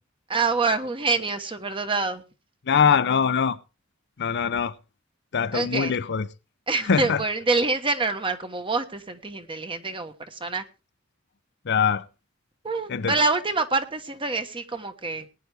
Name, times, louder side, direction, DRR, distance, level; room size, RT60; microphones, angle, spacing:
voice 1, 0.3-2.2 5.5-5.9 6.7-10.6 12.6-15.3, right 3 dB, 25° right, 1.2 m, -26 dB
voice 2, 2.7-3.6 4.2-4.7 5.3-6.3 6.9-7.2 11.7-12.0 12.9-13.1, left 6 dB, 55° left, 0.6 m, -22 dB
19.5 x 9.5 x 3.4 m
head